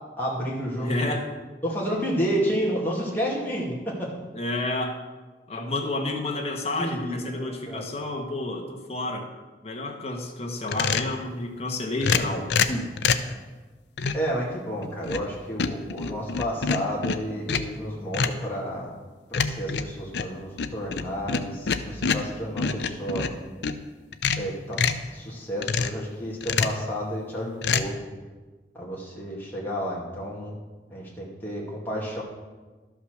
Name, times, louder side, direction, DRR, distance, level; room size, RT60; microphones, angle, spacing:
voice 1, 0.2-1.2 1.6-4.1 6.8-7.9 14.1-18.9 19.3-23.3 24.4-24.8 25.1-28.0 28.7-30.5 30.9-32.2, equal, 10° left, -5 dB, 2.2 m, -31 dB
voice 2, 0.8-1.3 4.3-5.0 5.5-9.3 9.6-12.9 16.1-16.2, left 2 dB, 35° left, 1 dB, 1.4 m, -30 dB
sound 1, 10.7-11.2 12.0-13.3 14.0-14.3 14.8-15.3 15.6-17.8 18.1-18.5 19.3-23.8 24.1-25.1 25.6-26.0 26.4-26.9 27.6-27.8, left 5 dB, 70° left, 0.6 m, -26 dB
12.0 x 5.7 x 6.4 m, 1.3 s
head